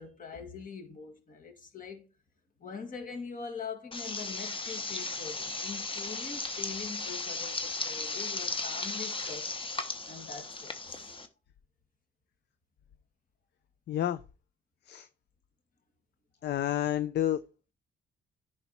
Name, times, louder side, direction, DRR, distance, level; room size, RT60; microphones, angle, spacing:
voice 1, 0.0-2.1 2.6-9.5 10.0-11.1, left 5 dB, 45° left, 2.2 m, -43 dB
sound 1, 3.9-11.3, left 3 dB, 25° left, 1.2 m, -36 dB
voice 2, 13.9-14.2 14.9-15.1 16.4-17.4, left 11 dB, 60° left, 0.5 m, -30 dB
10.0 x 4.6 x 4.2 m
cardioid pair, 90°, 20 cm